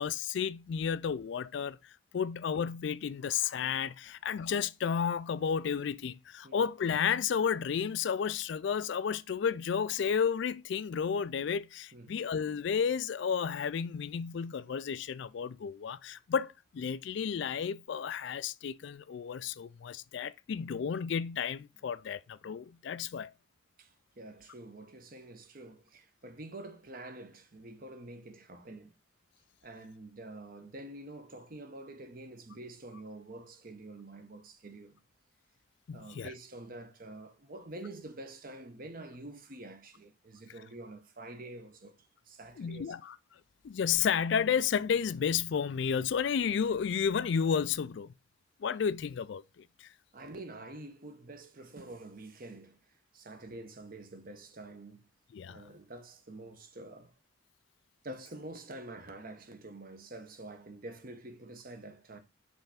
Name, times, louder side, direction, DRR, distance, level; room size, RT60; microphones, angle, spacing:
voice 1, 0.0-23.3 35.9-36.3 42.6-43.2 43.6-48.1 48.6-49.9 55.3-55.6, left 7 dB, 60° left, 0.3 m, -32 dB
voice 2, 23.8-29.0 29.6-35.0 35.9-42.9 50.1-55.0 55.5-57.1 58.0-62.2, right 2 dB, 45° right, 0.9 m, -47 dB
5.4 x 3.4 x 5.6 m
head